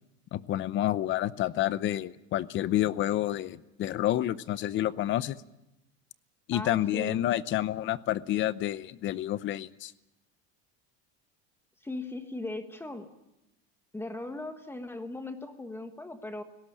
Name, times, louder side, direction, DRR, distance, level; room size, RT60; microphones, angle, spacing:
voice 1, 0.3-5.4 6.5-9.9, left 13 dB, 40° left, 17 dB, 0.7 m, -29 dB
voice 2, 6.5-7.2 11.8-13.1 13.9-16.4, left 2 dB, 5° left, 7 dB, 1.4 m, -38 dB
19.0 x 17.5 x 10.0 m, 0.94 s
cardioid pair, 155°, 31 cm